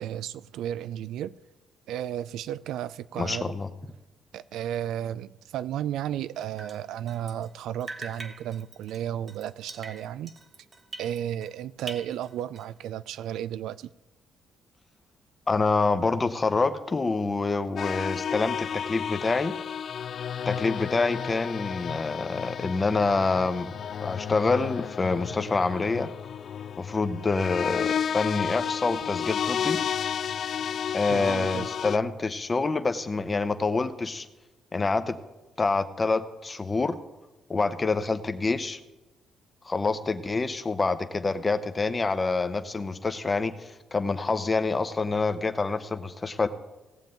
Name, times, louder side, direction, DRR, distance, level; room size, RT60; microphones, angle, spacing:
voice 1, 0.0-1.3 1.9-3.5 4.3-10.3 11.0-13.9 31.1-31.7, right 11 dB, 85° right, 0.3 m, -33 dB
voice 2, 3.2-3.7 15.5-19.6 20.5-23.7 24.0-26.1 26.8-29.8 30.9-34.3 34.7-35.2 35.6-37.0 37.5-38.8 39.6-46.5, left 3 dB, 25° left, 0.8 m, -27 dB
Drip, 6.4-7.5 7.8-11.5 11.8-12.8, right 3 dB, 35° right, 1.0 m, -44 dB
sound 1, 17.8-32.0, left 8 dB, 60° left, 0.3 m, -32 dB
18.0 x 7.3 x 3.8 m
cardioid pair, 90°, 0 cm